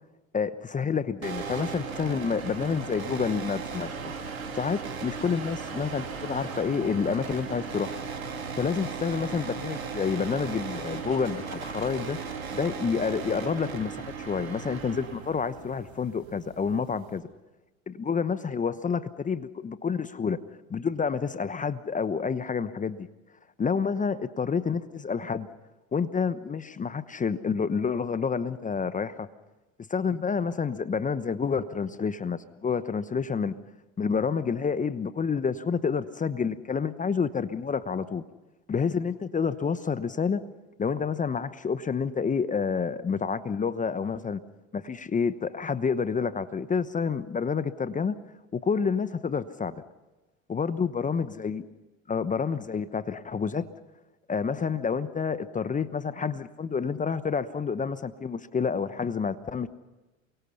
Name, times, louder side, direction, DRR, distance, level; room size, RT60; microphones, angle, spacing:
voice 1, 0.3-3.9 4.5-8.0 8.6-12.2 12.5-17.3 17.9-20.4 20.7-23.1 23.6-25.5 25.9-29.3 29.9-33.5 34.0-38.2 38.7-40.4 40.8-44.4 44.7-48.1 48.5-49.8 50.5-51.6 52.1-53.7 54.3-59.7, left 5 dB, 20° left, 13 dB, 1.0 m, -29 dB
sound 1, 1.2-17.2, right 5 dB, 90° right, 3.8 m, -37 dB
28.5 x 24.0 x 5.7 m, 1.1 s
hypercardioid pair, 85°, 41 cm